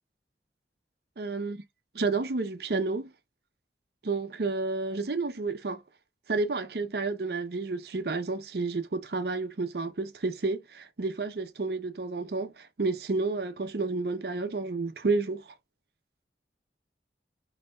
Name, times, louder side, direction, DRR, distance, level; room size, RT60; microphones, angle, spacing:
voice 1, 1.2-1.6 1.9-3.1 4.0-5.8 6.3-15.4, right 3 dB, 65° right, 0.6 m, -30 dB
5.2 x 2.8 x 2.2 m
head